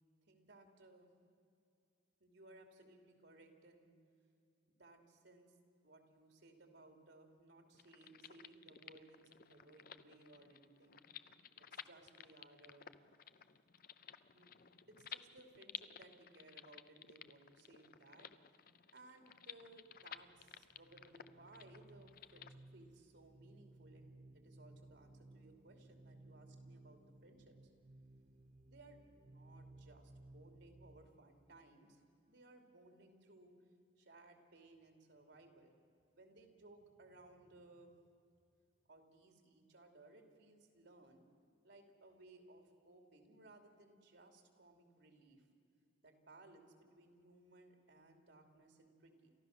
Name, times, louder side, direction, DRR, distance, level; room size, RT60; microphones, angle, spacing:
voice 1, 0.3-1.1 2.2-3.9 4.7-5.5 5.8-11.0 11.7-12.9 14.3-18.7 18.9-27.7 28.7-32.0 32.3-33.7 34.0-35.7 36.1-38.0 38.9-41.2 41.6-45.5 46.0-49.3, right 2 dB, 65° right, 4 dB, 2.8 m, -62 dB
sound 1, 7.7-22.5, left 9 dB, 50° left, 0.6 m, -55 dB
sound 2, 19.8-31.1, right 2 dB, 35° right, 0.6 m, -61 dB
29.5 x 14.5 x 6.6 m, 2.5 s
head